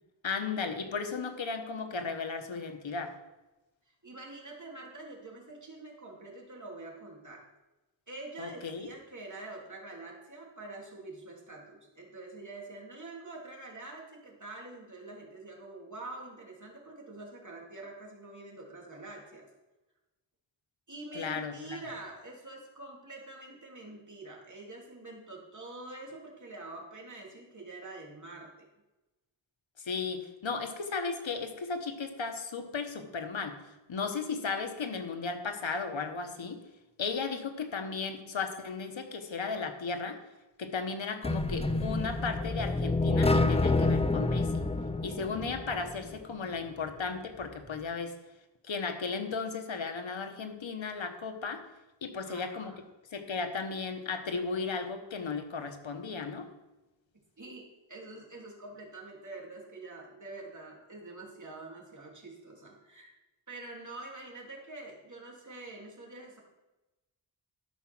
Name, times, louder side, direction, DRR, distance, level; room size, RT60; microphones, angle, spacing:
voice 1, 0.2-3.1 8.4-8.9 21.1-21.8 29.8-33.6 33.9-36.6 37.0-40.2 40.6-44.7 45.0-48.1 48.6-51.6 52.0-52.7 53.1-56.5, left 4 dB, 90° left, 6 dB, 1.2 m, -35 dB
voice 2, 4.0-7.4 8.1-19.5 20.9-28.7 52.2-52.8 57.4-63.1 63.5-66.4, right 2 dB, 40° right, -2 dB, 2.9 m, -46 dB
sound 1, 41.2-46.2, left 3 dB, 15° left, 0.5 m, -28 dB
13.0 x 5.8 x 6.1 m, 1.0 s
wide cardioid pair, 80°, 45 cm